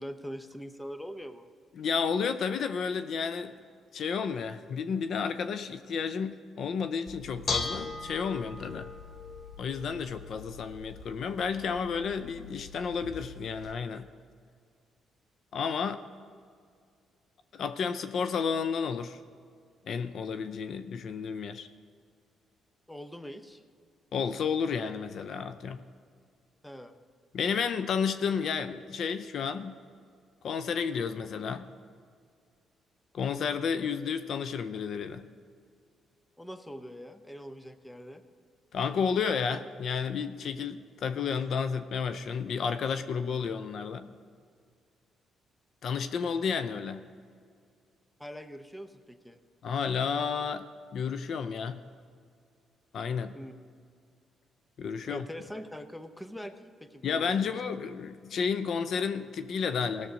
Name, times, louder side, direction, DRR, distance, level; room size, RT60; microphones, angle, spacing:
voice 1, 0.0-1.5 22.9-23.6 26.6-26.9 36.4-38.2 48.2-49.4 53.3-53.5 55.0-57.5 59.8-59.9, equal, 5° left, 9 dB, 0.8 m, -43 dB
voice 2, 1.8-3.6 3.9-8.9 9.6-14.1 15.5-16.0 17.5-19.2 19.9-21.7 24.1-25.8 27.3-29.8 30.4-31.7 33.1-35.2 38.7-44.1 45.8-47.1 49.6-50.6 50.9-51.8 52.9-53.3 54.8-55.3 57.0-60.1, left 6 dB, 65° left, 11 dB, 0.5 m, -31 dB
Bell / Dishes pots and pans, 7.1-13.7, left 4 dB, 45° left, 1.0 m, -40 dB
16.0 x 6.7 x 5.1 m, 2.1 s
cardioid pair, 90°, 0 cm